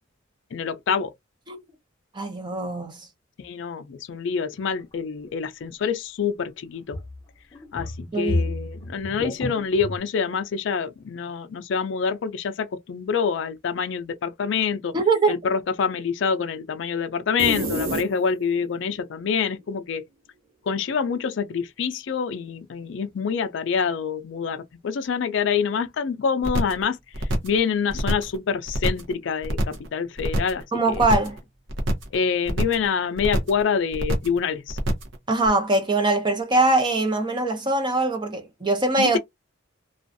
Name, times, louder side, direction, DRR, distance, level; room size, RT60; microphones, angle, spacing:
voice 1, 0.5-1.1 3.4-7.0 7.7-15.0 15.3-20.0 20.7-31.1 32.1-34.8 39.0-39.2, left 6 dB, 60° left, 0.4 m, -26 dB
voice 2, 2.1-3.1 8.1-8.5 14.9-15.4 30.7-31.4 35.3-39.2, right 2 dB, 25° right, 0.6 m, -22 dB
sound 1, 4.6-4.7 6.9-7.2 7.5-10.0, left 1 dB, 20° left, 0.7 m, -31 dB
sound 2, 17.4-18.6, right 1 dB, 85° right, 1.1 m, -28 dB
sound 3, 26.4-26.8 27.1-27.6 27.9-28.4 28.7-29.1 29.4-29.9 30.2-30.6 30.9-31.4 31.7-32.2 32.5-32.9 33.2-33.6 33.9-34.4 34.7-35.2 35.5-35.6, right 1 dB, 70° right, 0.7 m, -25 dB
2.4 x 2.2 x 2.5 m
head